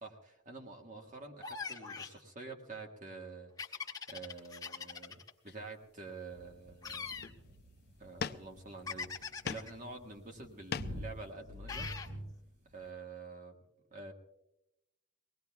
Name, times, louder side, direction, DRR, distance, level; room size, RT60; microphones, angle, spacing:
voice 1, 0.0-5.2 5.4-7.1 8.0-12.0 12.7-13.5 13.9-14.1, right 3 dB, 40° right, 2 dB, 1.7 m, -48 dB
sound 1, 1.4-2.2 3.6-5.3 6.8-7.3 8.9-9.7 11.7-12.1, left 5 dB, 20° left, 1.4 m, -42 dB
sound 2, 4.8-4.9 5.5-6.2 6.7-6.8 7.1-7.6 8.2-8.8 9.2-9.8 10.1-11.1, left 6 dB, 50° left, 0.5 m, -42 dB
sound 3, 6.3-12.9, equal, 55° right, 7.2 m, -49 dB
23.0 x 19.0 x 2.3 m, 0.88 s
head